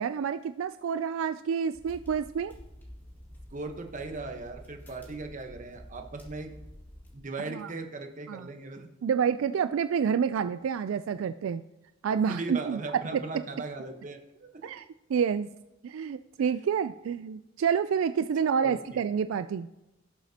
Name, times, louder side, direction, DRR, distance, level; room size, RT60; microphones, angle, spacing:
voice 1, 0.0-2.5 7.5-7.7 8.3-8.5 9.0-11.6 12.0-12.8 14.6-15.5 15.8-19.7, right 7 dB, 75° right, 11 dB, 0.3 m, -28 dB
sound 1, 1.7-7.1, equal, 10° left, 2.2 m, -49 dB
voice 2, 3.5-6.5 7.1-8.9 12.1-14.7 18.6-18.8, right 3 dB, 40° right, 5 dB, 1.1 m, -38 dB
17.5 x 7.2 x 2.9 m, 0.95 s
head